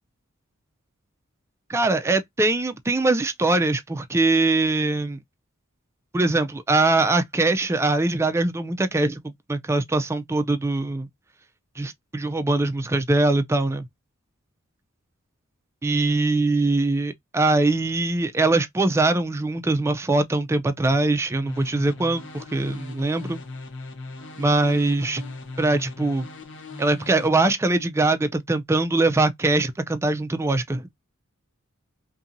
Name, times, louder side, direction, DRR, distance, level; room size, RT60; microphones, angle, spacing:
voice 1, 1.7-5.2 6.1-11.1 11.8-13.8 15.8-23.4 24.4-25.2 25.6-26.3 26.8-30.8, right 2 dB, 15° right, 0.3 m, -22 dB
sound 1, 21.4-27.3, left 3 dB, 60° left, 0.8 m, -39 dB
2.7 x 2.6 x 2.5 m
head